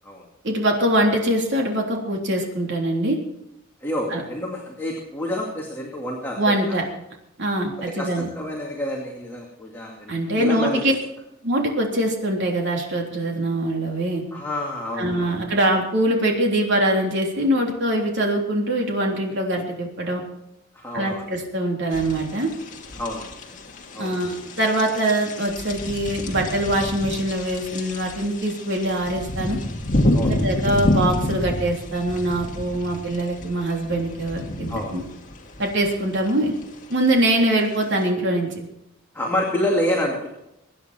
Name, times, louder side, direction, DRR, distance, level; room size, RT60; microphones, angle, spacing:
voice 1, 0.4-3.2 4.1-4.2 6.4-6.9 7.4-8.3 10.1-10.9 11.4-14.2 15.0-20.2 20.9-22.5 24.0-29.6 30.3-35.0 35.6-36.5 36.9-38.6, right 1 dB, 55° right, 0 dB, 3.5 m, -23 dB
voice 2, 3.8-6.6 8.0-10.9 14.3-15.4 20.7-21.3 23.0-23.6 23.9-24.1 30.1-30.3 34.7-34.9 39.1-40.3, left 1 dB, 10° left, -2 dB, 2.4 m, -28 dB
sound 1, 21.9-38.1, left 1 dB, 40° left, 2.0 m, -29 dB
24.0 x 9.9 x 4.5 m, 0.84 s
head